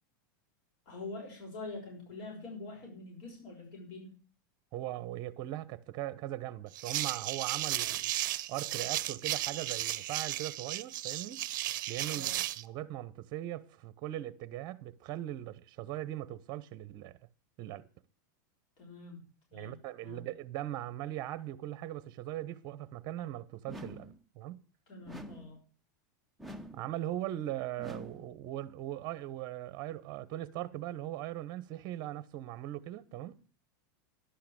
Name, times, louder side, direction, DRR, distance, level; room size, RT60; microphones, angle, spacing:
voice 1, 0.9-4.1 12.1-12.4 18.8-19.2 19.5-20.2 24.9-25.6, left 3 dB, 50° left, 5.9 m, -45 dB
voice 2, 4.7-8.1 8.5-11.4 11.9-17.1 17.6-17.9 19.5-24.6 26.7-33.4, right 13 dB, 40° right, 1.0 m, -40 dB
sound 1, 6.7-12.6, right 15 dB, 70° right, 0.6 m, -35 dB
sound 2, 23.7-24.2 25.1-25.6 26.4-26.9 27.8-28.3, equal, ahead, 0.8 m, -46 dB
11.5 x 5.8 x 8.6 m
supercardioid pair, 130°, 11 cm